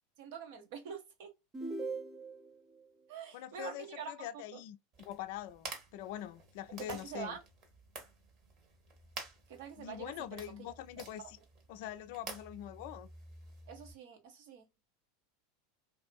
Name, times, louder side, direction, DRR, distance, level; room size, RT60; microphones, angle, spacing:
voice 1, 0.2-1.3 3.1-4.6 6.8-7.4 9.5-10.7 11.2-11.3 13.7-14.7, right 7 dB, 65° right, 0.9 m, -46 dB
sound 1, 1.5-2.6, right 3 dB, 25° right, 0.9 m, -40 dB
voice 2, 3.3-7.3 9.8-11.4 11.7-13.1, left 11 dB, 60° left, 0.3 m, -44 dB
sound 2, 4.9-13.9, right 3 dB, 45° right, 1.2 m, -51 dB
2.6 x 2.5 x 2.2 m
hypercardioid pair, 90°, 0 cm